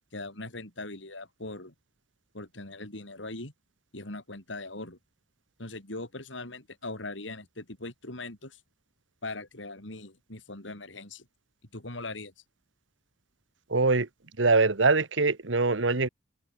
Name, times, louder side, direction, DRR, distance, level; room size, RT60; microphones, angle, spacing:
voice 1, 0.1-1.7 2.3-3.5 3.9-5.0 5.6-8.6 9.2-11.3 11.7-12.3, left 2 dB, 85° left, 5.0 m, -40 dB
voice 2, 13.7-14.1 14.4-16.1, right 3 dB, 90° right, 1.5 m, -23 dB
open air
head